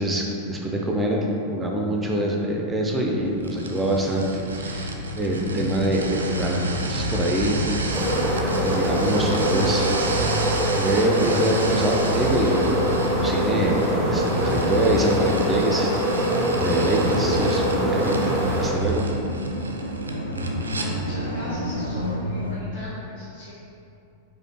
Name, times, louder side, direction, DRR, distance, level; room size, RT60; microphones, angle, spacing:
voice 1, 0.0-10.4 10.8-15.9 16.6-19.0, right 1 dB, 10° right, -1 dB, 0.5 m, -25 dB
sound 1, 3.1-22.6, equal, 85° left, 0.3 m, -29 dB
sound 2, 3.4-20.9, right 3 dB, 75° right, 0.3 m, -34 dB
sound 3, 7.9-18.7, right 1 dB, 5° left, 1.0 m, -25 dB
voice 2, 20.7-23.5, equal, 40° left, -10 dB, 0.9 m, -38 dB
4.8 x 2.1 x 3.3 m, 2.7 s
figure-of-eight pair, 90°, 0 cm